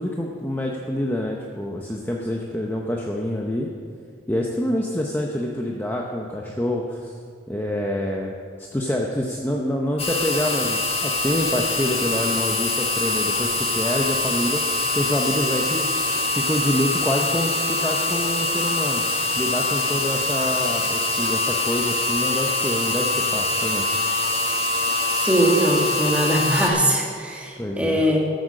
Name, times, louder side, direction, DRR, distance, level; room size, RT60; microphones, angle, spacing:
voice 1, 0.0-3.7 4.3-7.1 7.5-8.3 8.6-14.6 14.9-15.9 16.3-19.0 19.4-23.9 27.6-28.0, left 1 dB, 10° left, -1 dB, 0.7 m, -26 dB
sound 1, 10.0-26.7, left 2 dB, 30° left, 1.3 m, -24 dB
voice 2, 25.1-28.2, right 1 dB, 5° right, -1 dB, 1.7 m, -21 dB
13.5 x 7.9 x 6.5 m, 2.2 s
head